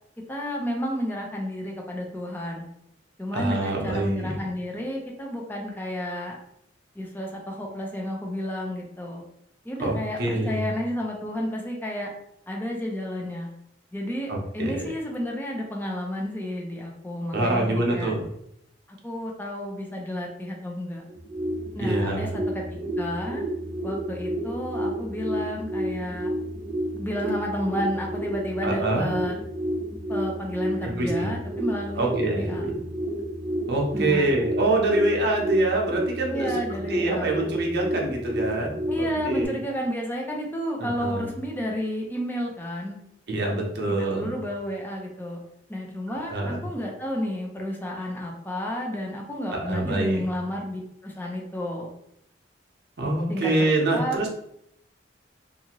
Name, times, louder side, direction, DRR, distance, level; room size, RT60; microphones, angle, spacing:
voice 1, 0.3-2.7 3.2-6.4 7.0-9.3 9.6-12.1 12.5-13.5 13.9-18.1 18.9-21.0 21.7-23.5 23.8-26.3 26.9-29.4 30.1-32.8 33.9-34.3 36.3-37.5 38.9-43.0 43.9-45.4 45.7-51.9 53.3-53.5 53.9-54.2, equal, 10° left, 0 dB, 0.5 m, -31 dB
voice 2, 3.3-4.4 9.8-10.7 14.3-14.8 17.3-18.2 21.8-22.3 28.6-29.1 30.8-31.3 32.0-32.8 33.7-39.6 40.8-41.3 43.3-44.4 46.3-46.7 49.5-50.2 53.0-54.4, right 2 dB, 65° right, 0 dB, 0.7 m, -26 dB
sound 1, 21.1-39.5, right 1 dB, 15° right, 0.8 m, -30 dB
2.7 x 2.4 x 2.9 m, 0.75 s
head